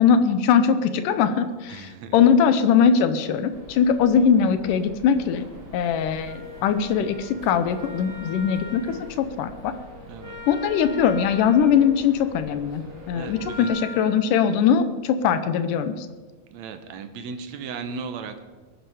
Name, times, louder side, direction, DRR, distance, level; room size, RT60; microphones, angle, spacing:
voice 1, 0.0-5.5 5.7-9.7 10.5-16.1, left 7 dB, 75° left, 10 dB, 2.3 m, -21 dB
voice 2, 1.7-2.2 10.1-10.4 13.1-13.8 16.5-18.5, right 5 dB, 65° right, 8 dB, 2.0 m, -36 dB
sound 1, 3.5-13.7, right 1 dB, 25° right, 2.8 m, -45 dB
Wind instrument woodwind instrument, 6.2-14.2, left 2 dB, 15° left, 1.1 m, -41 dB
21.5 x 9.2 x 4.9 m, 1.4 s
omnidirectional pair, 3.9 m